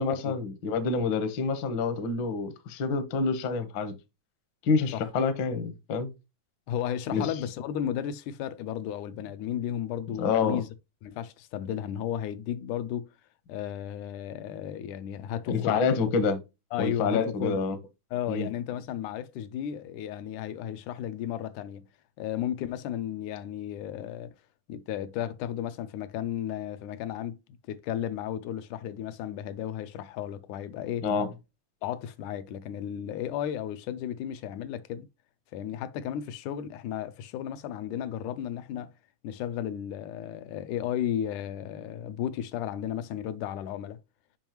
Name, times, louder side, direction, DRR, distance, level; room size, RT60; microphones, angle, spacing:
voice 1, 0.0-3.9 4.6-6.1 7.1-7.3 10.2-10.6 15.5-16.4 16.8-17.8 18.3-18.5 31.0-31.3, left 5 dB, 65° left, 1.2 m, -27 dB
voice 2, 6.7-10.7 11.0-13.1 13.5-15.8 16.7-17.6 18.1-21.9 22.2-24.3 24.7-27.4 27.7-31.1 31.8-35.1 35.5-38.9 39.2-44.0, left 10 dB, 80° left, 2.0 m, -34 dB
7.1 x 5.4 x 2.9 m
omnidirectional pair, 3.6 m